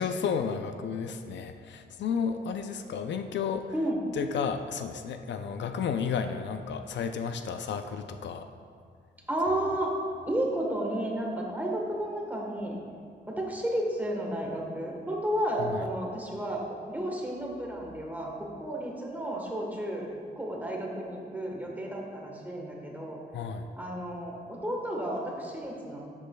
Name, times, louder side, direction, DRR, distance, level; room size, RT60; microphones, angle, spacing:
voice 1, 0.0-3.7 4.1-8.5 15.6-15.8 23.3-23.6, left 6 dB, 70° left, 7 dB, 0.5 m, -32 dB
voice 2, 9.3-9.9 10.3-12.8 13.3-20.1 20.3-23.2 23.8-26.0, right 1 dB, 10° right, -1 dB, 1.2 m, -32 dB
12.5 x 8.2 x 2.3 m, 2.2 s
wide cardioid pair, 160°, 19 cm